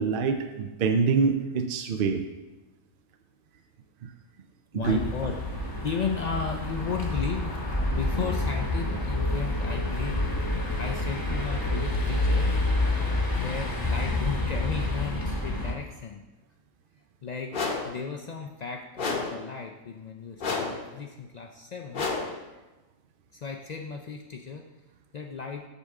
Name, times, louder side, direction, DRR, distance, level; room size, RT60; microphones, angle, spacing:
voice 1, 0.0-2.2 4.0-4.1 4.8-5.0 22.3-22.4, right 5 dB, 60° right, 6 dB, 0.6 m, -25 dB
voice 2, 4.7-5.4 5.8-7.6 7.9-10.3 10.8-12.6 13.4-16.2 17.2-22.1 23.3-24.6 25.1-25.7, left 6 dB, 70° left, 2 dB, 0.4 m, -34 dB
sound 1, 4.8-15.7, left 2 dB, 20° left, 0.9 m, -28 dB
sound 2, 17.5-18.0 19.0-19.5 20.4-20.9 21.9-22.4, left 4 dB, 45° left, 0.9 m, -30 dB
8.1 x 3.6 x 6.4 m, 1.1 s
omnidirectional pair, 1.3 m